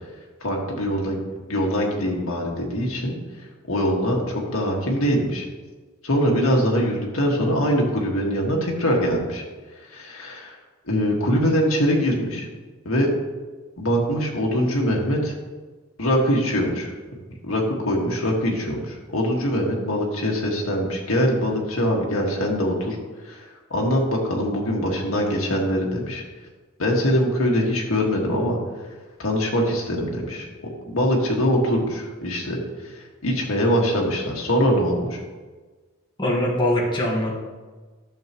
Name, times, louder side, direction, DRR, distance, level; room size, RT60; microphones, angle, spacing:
voice 1, 0.4-1.2 1.5-3.2 3.7-5.5 6.0-9.4 9.9-10.6 10.9-12.5 12.9-13.1 13.8-15.4 16.0-16.9 17.4-23.0 23.2-26.2 26.8-28.6 29.2-30.5 30.9-32.6 32.8-32.9 33.2-35.2, equal, 75° left, -1 dB, 1.8 m, -23 dB
voice 2, 36.2-37.4, left 1 dB, 25° left, -3 dB, 1.5 m, -22 dB
11.5 x 7.4 x 3.0 m, 1.3 s
head